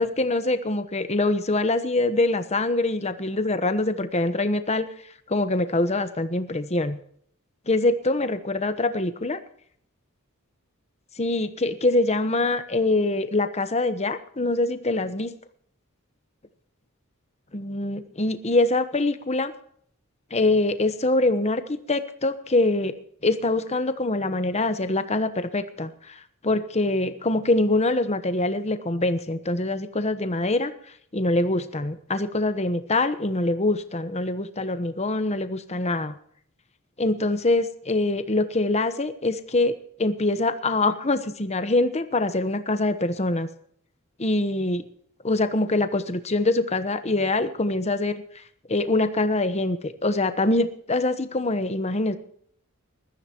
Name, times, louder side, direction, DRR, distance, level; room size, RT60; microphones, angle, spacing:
voice 1, 0.0-4.9 5.3-7.0 7.7-9.4 11.2-15.3 17.5-19.5 20.3-22.9 23.2-30.7 31.1-36.2 37.0-39.7 40.0-43.5 44.2-44.8 45.2-48.1 48.7-52.2, left 2 dB, 30° left, 10 dB, 1.1 m, -24 dB
20.5 x 14.0 x 3.0 m, 0.64 s
head